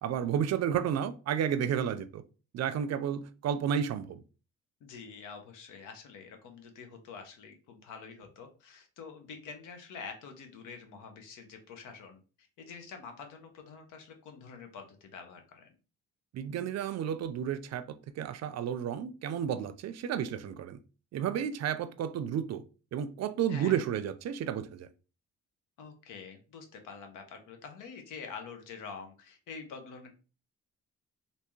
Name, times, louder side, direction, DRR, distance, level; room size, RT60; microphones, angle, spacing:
voice 1, 0.0-2.2 2.5-4.2 16.3-20.8 21.1-22.6 22.9-24.9, right 8 dB, 60° right, 0.5 m, -32 dB
voice 2, 4.8-15.7 23.5-23.8 25.8-30.1, left 5 dB, 85° left, 0.9 m, -47 dB
3.4 x 2.8 x 3.1 m
cardioid pair, 90°, 30 cm